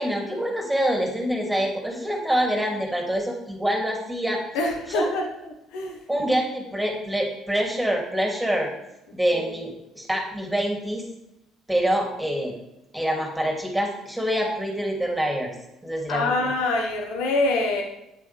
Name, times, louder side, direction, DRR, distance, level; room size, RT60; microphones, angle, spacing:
voice 1, 0.0-4.4 4.9-5.1 6.1-8.7 9.1-11.0 11.7-12.5 12.9-15.5 15.8-16.5, equal, 5° right, 1 dB, 2.9 m, -26 dB
voice 2, 4.5-6.0 9.3-9.4 16.1-17.8, left 2 dB, 75° left, 2 dB, 1.3 m, -25 dB
8.9 x 8.5 x 3.5 m, 0.86 s
hypercardioid pair, 55°, 0 cm